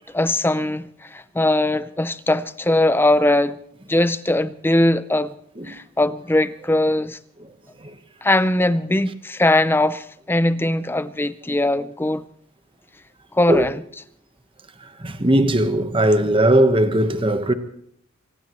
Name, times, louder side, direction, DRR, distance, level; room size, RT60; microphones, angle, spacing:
voice 1, 0.1-3.6 3.9-5.3 5.7-7.2 8.2-12.2 13.3-13.8, left 1 dB, 10° left, 0.6 m, -20 dB
voice 2, 15.0-17.5, right 1 dB, 25° right, 1.2 m, -18 dB
24.0 x 19.0 x 3.1 m
head